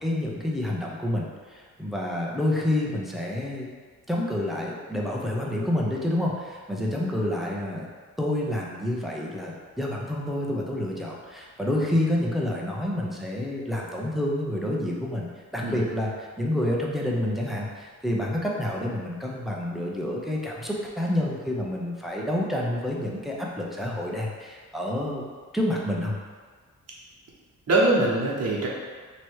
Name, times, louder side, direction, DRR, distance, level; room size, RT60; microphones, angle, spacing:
voice 1, 0.0-3.7 4.1-7.9 8.2-15.3 15.5-25.2 25.5-26.2, left 1 dB, ahead, -3 dB, 0.7 m, -28 dB
voice 2, 27.7-28.7, right 2 dB, 50° right, -4 dB, 1.1 m, -23 dB
3.0 x 3.0 x 4.6 m, 1.5 s
cardioid pair, 95°, 32 cm